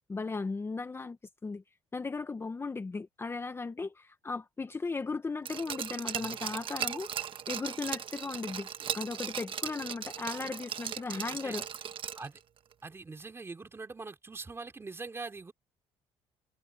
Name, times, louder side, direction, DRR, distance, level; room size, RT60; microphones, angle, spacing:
voice 1, 0.1-1.6 1.9-7.1 7.5-8.7 8.9-11.6, left 4 dB, 20° left, 1.0 m, -36 dB
Glass, 5.5-12.4 12.7-12.8, right 8 dB, 50° right, 1.4 m, -38 dB
voice 2, 12.8-15.5, right 3 dB, 25° right, 3.2 m, -42 dB
cardioid pair, 100°, 11 cm